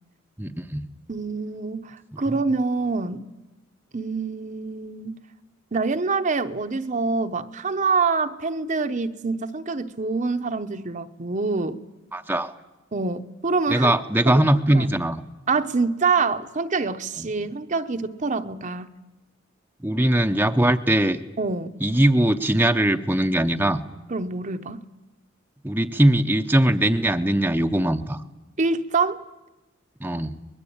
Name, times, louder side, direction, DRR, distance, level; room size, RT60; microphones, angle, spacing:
voice 1, 0.4-0.8 12.1-12.5 13.7-15.2 17.2-17.3 19.8-21.2 21.8-23.8 25.6-28.2 30.0-30.3, right 1 dB, 10° right, 0.8 m, -21 dB
voice 2, 1.1-3.3 3.9-5.2 5.7-11.8 12.9-13.9 14.3-14.4 14.7-14.9 15.5-18.9 21.4-21.7 24.1-24.9 28.6-29.2 30.1-30.2, right 4 dB, 40° right, 0.9 m, -26 dB
24.0 x 21.0 x 8.7 m
head